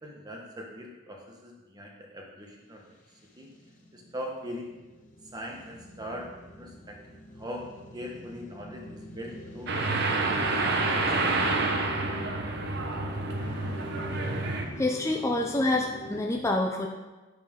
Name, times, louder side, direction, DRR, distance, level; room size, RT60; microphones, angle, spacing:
voice 1, 0.0-2.9 3.4-3.5 3.9-4.7 5.3-7.7 7.9-9.7 10.1-11.3, equal, 20° right, 0 dB, 1.3 m, -41 dB
sound 1, 2.9-16.2, equal, 40° left, 1.2 m, -44 dB
sound 2, 9.7-14.6, right 3 dB, 55° right, 0.9 m, -28 dB
voice 2, 14.8-16.9, left 2 dB, 15° left, 1 dB, 0.5 m, -27 dB
9.6 x 6.5 x 3.7 m, 1.1 s
head